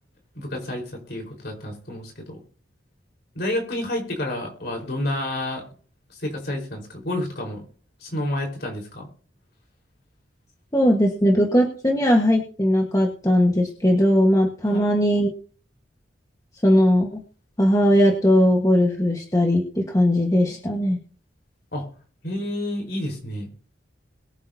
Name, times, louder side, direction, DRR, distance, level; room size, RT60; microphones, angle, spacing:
voice 1, 0.3-2.4 3.3-5.6 6.1-7.7 8.0-9.1 14.6-14.9 21.7-21.9 22.2-23.5, left 1 dB, 55° left, 1 dB, 4.5 m, -29 dB
voice 2, 10.7-15.3 16.6-17.2 17.6-21.0, equal, 15° left, 0 dB, 1.4 m, -19 dB
22.0 x 9.0 x 2.8 m, 0.42 s
head